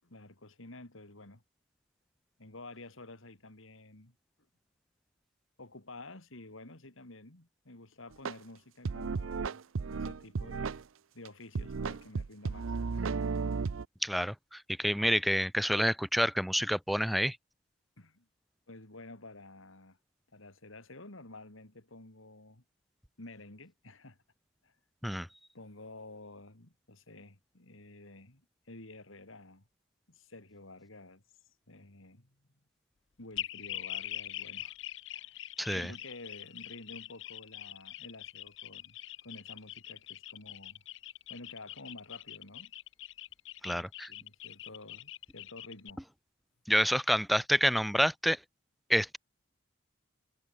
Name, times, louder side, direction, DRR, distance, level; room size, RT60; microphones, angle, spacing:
voice 1, 0.0-1.4 2.4-4.1 5.6-9.6 9.9-10.8 11.1-13.3 18.0-18.3 18.7-20.0 20.3-22.6 23.2-24.2 24.6-24.7 25.5-29.6 30.1-31.2 31.7-32.4 33.2-34.7 35.1-35.4 35.7-40.8 41.3-42.7 43.7-46.0, left 2 dB, 80° left, 3.2 m, -51 dB
sound 1, 8.3-8.4 8.9-10.8 11.3-11.4 11.6-13.9, right 4 dB, 80° right, 0.6 m, -34 dB
voice 2, 14.0-17.4 25.0-25.3 35.6-35.9 43.6-44.1 46.7-48.4 48.9-49.2, equal, ahead, 0.4 m, -28 dB
sound 2, 33.4-45.9, left 14 dB, 65° left, 0.6 m, -43 dB
head